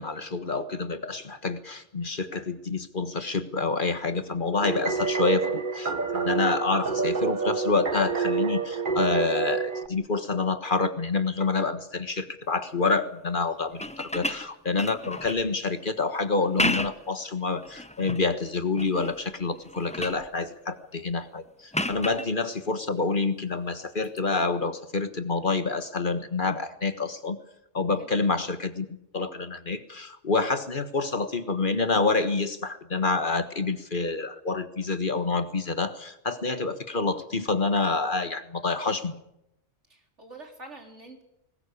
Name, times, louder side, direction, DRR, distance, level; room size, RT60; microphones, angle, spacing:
voice 1, 0.0-27.4 27.7-28.9 29.1-39.2, left 3 dB, 45° left, 10 dB, 1.6 m, -27 dB
sound 1, 4.6-9.9, right 5 dB, 45° right, 1.5 m, -28 dB
sound 2, 13.7-15.5 16.4-17.1 17.6-18.3 18.8-19.2 19.6-20.3 21.7-22.3 24.0-24.2, left 1 dB, 5° left, 1.0 m, -32 dB
voice 2, 39.9-41.2, right 2 dB, 80° right, 3 dB, 4.3 m, -46 dB
21.0 x 20.0 x 8.5 m, 0.82 s
omnidirectional pair, 1.2 m